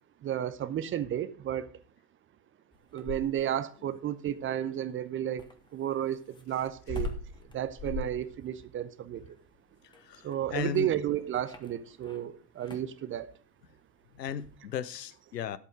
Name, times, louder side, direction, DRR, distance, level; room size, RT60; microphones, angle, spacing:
voice 1, 0.2-1.7 2.9-5.4 5.7-7.1 7.5-9.2 10.2-13.4, right 10 dB, 25° right, 0.7 m, -32 dB
sound 1, 2.7-3.6 5.4-12.2 12.6-13.0 14.3-14.6, left 2 dB, 10° left, 1.5 m, -41 dB
voice 2, 10.0-10.9 14.2-15.6, left 8 dB, 80° left, 0.8 m, -36 dB
11.0 x 8.4 x 5.0 m
figure-of-eight pair, 80°, 48 cm